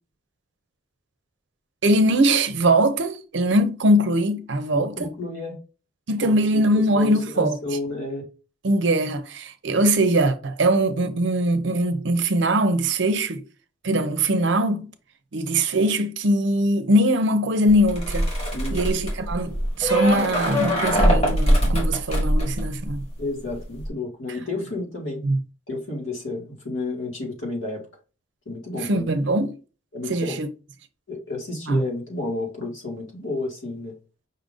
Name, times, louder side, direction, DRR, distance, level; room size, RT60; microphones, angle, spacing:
voice 1, 1.8-5.1 6.1-7.6 8.6-13.4 13.8-14.9 15.3-18.3 18.7-23.0 25.2-25.4 28.7-29.6 30.1-30.5 31.7-31.8, right 1 dB, 60° right, 0.6 m, -21 dB
voice 2, 4.7-5.6 6.2-8.2 18.5-18.8 23.2-25.2 25.7-27.8 28.5-29.1 29.9-30.4 31.1-33.9, left 2 dB, 75° left, 2.0 m, -31 dB
sound 1, 17.7-23.2 23.5-23.9, equal, 30° left, 1.2 m, -22 dB
5.4 x 2.6 x 3.7 m
head